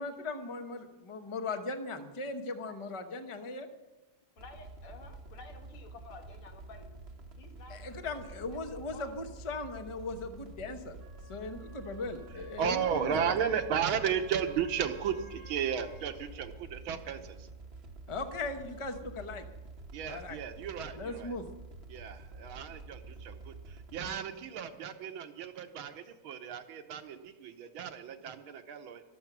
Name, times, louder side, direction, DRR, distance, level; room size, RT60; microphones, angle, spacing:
voice 1, 0.0-3.7 7.7-11.0 11.3-13.3 18.1-19.5 20.0-20.4 20.9-21.4, left 3 dB, 30° left, 7 dB, 0.5 m, -38 dB
voice 2, 4.4-6.9 7.4-9.2, left 4 dB, 85° left, 4 dB, 2.5 m, -52 dB
sound 1, 4.4-24.2, right 3 dB, 40° right, 1.0 m, -49 dB
Wind instrument woodwind instrument, 11.0-16.1, right 2 dB, 65° left, 2.9 m, -55 dB
voice 3, 12.6-17.5 19.9-21.3 21.9-29.0, right 8 dB, 75° right, 7 dB, 1.8 m, -34 dB
14.0 x 12.5 x 6.1 m, 1.1 s
omnidirectional pair, 2.3 m